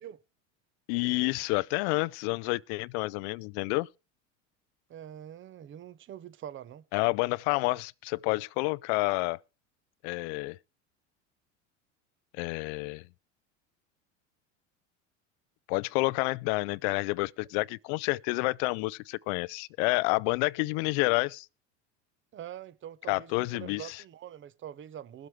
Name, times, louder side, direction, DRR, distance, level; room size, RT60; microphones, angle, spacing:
voice 1, 0.9-3.9 6.9-9.4 10.0-10.6 12.3-13.0 15.7-21.5 23.1-24.0, left 24 dB, 65° left, 0.5 m, -29 dB
voice 2, 4.9-6.8 22.3-25.3, right 10 dB, 30° right, 0.8 m, -44 dB
21.5 x 7.8 x 3.2 m
hypercardioid pair, 95°, 37 cm